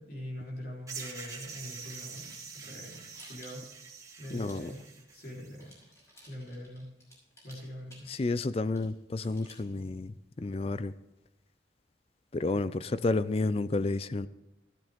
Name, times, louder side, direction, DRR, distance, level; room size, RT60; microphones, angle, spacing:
voice 1, 0.0-3.6 4.2-4.8 5.1-5.7 6.3-6.9 7.4-8.1, equal, 60° left, -3 dB, 4.0 m, -43 dB
sound 1, 0.9-5.6, right 5 dB, 20° right, 1.7 m, -45 dB
sound 2, 1.8-5.3 5.6-10.1, equal, 15° left, 5.6 m, -57 dB
voice 2, 4.3-4.7 8.1-10.9 12.3-14.3, left 2 dB, 35° left, 15 dB, 0.4 m, -31 dB
14.0 x 13.0 x 3.6 m, 0.99 s
head